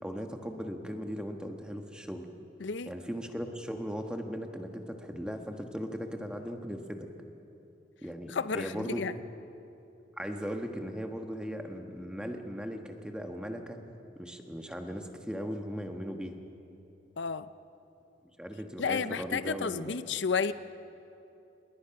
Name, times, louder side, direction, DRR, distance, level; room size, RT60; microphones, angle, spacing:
voice 1, 0.0-2.3 2.9-7.1 8.0-9.0 10.2-13.8 14.1-16.3 18.4-20.0, equal, 5° right, 4 dB, 1.4 m, -38 dB
voice 2, 2.6-2.9 8.3-9.1 17.2-17.5 18.8-20.5, left 5 dB, 80° left, 13 dB, 0.6 m, -31 dB
28.5 x 20.0 x 5.9 m, 2.8 s
head